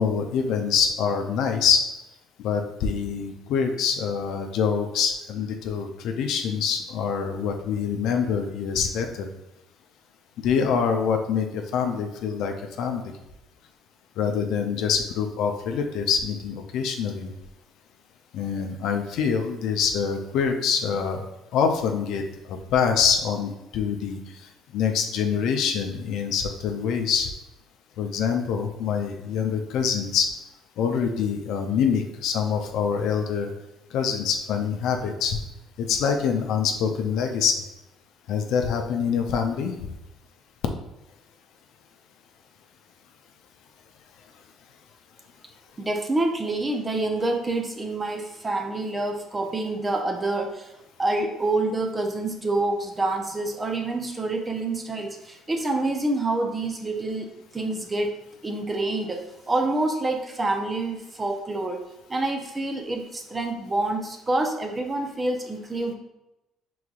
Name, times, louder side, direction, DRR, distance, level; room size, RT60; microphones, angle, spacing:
voice 1, 0.0-1.8 2.4-9.3 10.4-13.0 14.2-17.3 18.3-21.2 21.5-22.2 22.5-24.2 24.7-27.3 28.0-30.3 30.8-33.5 33.9-35.4 35.8-37.5 38.3-39.7, left 6 dB, 75° left, 4 dB, 0.5 m, -25 dB
voice 2, 45.8-50.7 51.0-58.1 58.4-61.8 62.1-65.9, right 2 dB, 25° right, 3 dB, 0.7 m, -27 dB
4.5 x 3.9 x 2.4 m, 0.92 s
supercardioid pair, 75°, 0 cm